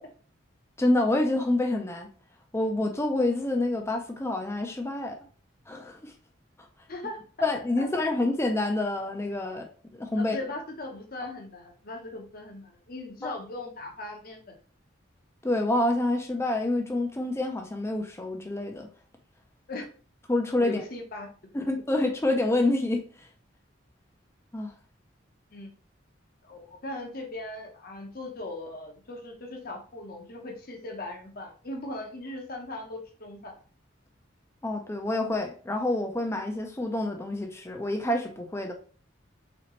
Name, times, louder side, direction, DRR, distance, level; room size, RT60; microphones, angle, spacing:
voice 1, 0.8-2.1 2.5-5.2 5.7-6.1 7.4-9.7 10.0-10.4 13.2-13.3 15.4-18.9 20.3-20.8 21.5-23.3 24.5-24.7 34.6-38.7, left 2 dB, 15° left, 3 dB, 0.5 m, -27 dB
voice 2, 6.9-7.5 7.8-7.9 10.2-14.5 19.7-19.8 20.6-21.3 25.5-25.7 26.4-33.5, left 2 dB, 50° left, 3 dB, 0.9 m, -39 dB
4.2 x 3.9 x 3.1 m, 0.41 s
head